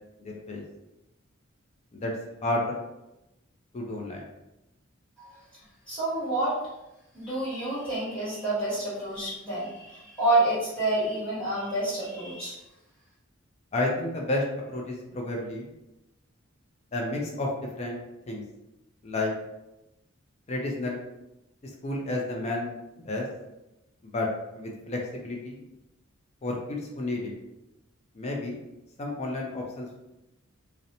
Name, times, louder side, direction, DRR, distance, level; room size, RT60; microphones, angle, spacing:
voice 1, 0.2-0.6 1.9-2.1 2.4-2.8 3.7-4.3 13.7-15.7 16.9-17.5 17.8-18.0 18.3-18.4 19.0-19.3 20.5-21.0 21.6-22.7 23.0-23.3 24.0-24.3 24.6-25.6 26.4-27.3 28.1-28.6 29.0-30.0, left 2 dB, 30° left, -1 dB, 0.4 m, -31 dB
voice 2, 5.9-6.5 7.1-12.5, right 2 dB, 5° left, -11 dB, 1.3 m, -28 dB
2.5 x 2.0 x 2.8 m, 0.93 s
head